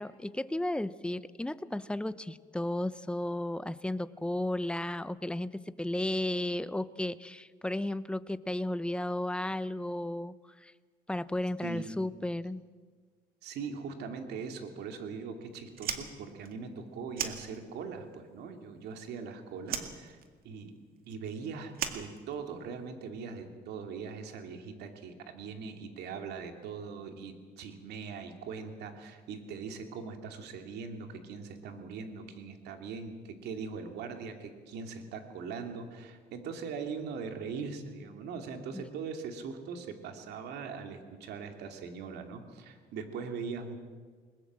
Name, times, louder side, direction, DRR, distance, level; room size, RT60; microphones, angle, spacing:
voice 1, 0.0-10.3 10.6-10.7 11.1-12.6 38.7-38.8, left 1 dB, 5° left, 15 dB, 0.7 m, -34 dB
voice 2, 11.6-12.0 13.4-20.2 20.4-20.7 21.0-43.8, right 5 dB, 80° right, 5 dB, 2.7 m, -41 dB
Fire, 15.7-18.0 18.3-19.3 19.6-22.8, right 8 dB, 60° right, 2.1 m, -38 dB
21.5 x 21.0 x 7.5 m, 1.5 s
cardioid pair, 110°, 17 cm